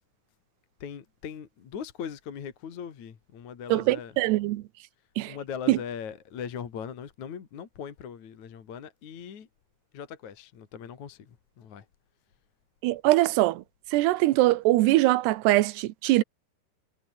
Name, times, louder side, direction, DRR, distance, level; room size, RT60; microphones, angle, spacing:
voice 1, 0.8-4.1 5.3-9.5 9.9-11.9, left 7 dB, 50° left, 3.5 m, -40 dB
voice 2, 3.7-4.6 5.2-5.3 5.7-5.8 12.8-13.6 13.9-16.2, right 17 dB, 85° right, 3.0 m, -22 dB
omnidirectional pair, 4.7 m